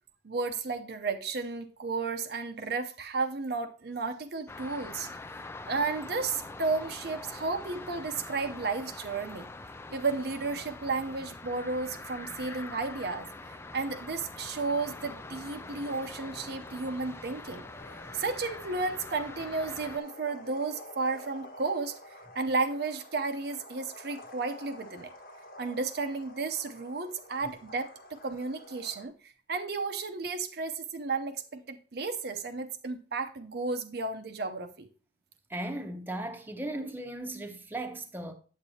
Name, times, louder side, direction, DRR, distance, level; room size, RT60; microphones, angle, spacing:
voice 1, 0.2-5.1 5.7-9.5 9.9-17.6 18.1-22.0 22.3-25.1 25.6-34.9, right 3 dB, 60° right, 0.7 m, -33 dB
sound 1, 4.5-20.0, left 3 dB, 15° left, 0.3 m, -44 dB
sound 2, 12.7-29.1, left 1 dB, 55° left, 1.2 m, -51 dB
voice 2, 35.5-38.3, right 1 dB, 10° right, 0.8 m, -37 dB
8.1 x 8.0 x 2.8 m
head